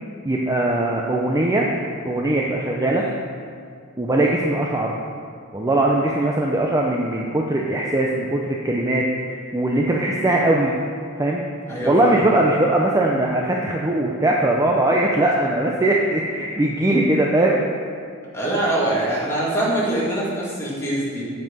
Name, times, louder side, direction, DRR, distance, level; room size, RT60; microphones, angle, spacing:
voice 1, 0.2-1.7 2.0-3.1 4.0-4.9 5.5-9.1 9.5-10.7 11.2-11.4 11.8-17.6, right 1 dB, 15° right, -1 dB, 0.5 m, -20 dB
voice 2, 11.7-12.2 18.3-21.2, right 1 dB, 15° left, -7 dB, 2.2 m, -23 dB
8.3 x 5.5 x 5.3 m, 2.2 s
head